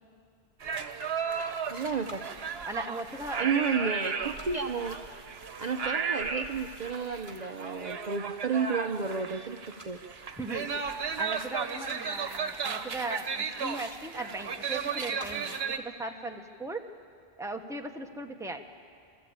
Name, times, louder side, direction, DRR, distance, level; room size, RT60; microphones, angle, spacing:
sound 1, 0.6-15.8, right 6 dB, 75° right, 1.2 m, -35 dB
voice 1, 1.7-2.2 3.4-5.0 5.6-9.6 9.9-10.0, right 5 dB, 45° right, 5 dB, 0.8 m, -31 dB
sound 2, 2.0-16.7, equal, 25° right, 2.6 m, -57 dB
voice 2, 2.6-3.6 10.4-16.8 17.4-18.6, right 2 dB, 5° right, 4 dB, 1.1 m, -38 dB
27.5 x 14.0 x 8.8 m, 2.3 s
omnidirectional pair, 1.1 m